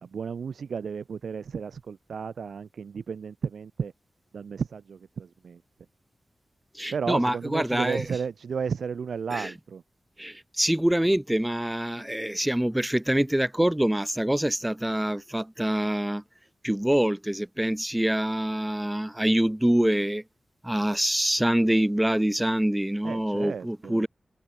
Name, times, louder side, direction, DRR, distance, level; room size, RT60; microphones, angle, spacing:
voice 1, 0.0-3.9 4.3-5.6 6.9-9.8 23.0-24.1, right 6 dB, 85° right, 2.0 m, -33 dB
voice 2, 6.7-8.0 9.3-9.5 10.2-16.2 16.6-20.2 20.6-24.1, right 1 dB, 10° right, 0.3 m, -25 dB
wide cardioid pair, 75°, 0 cm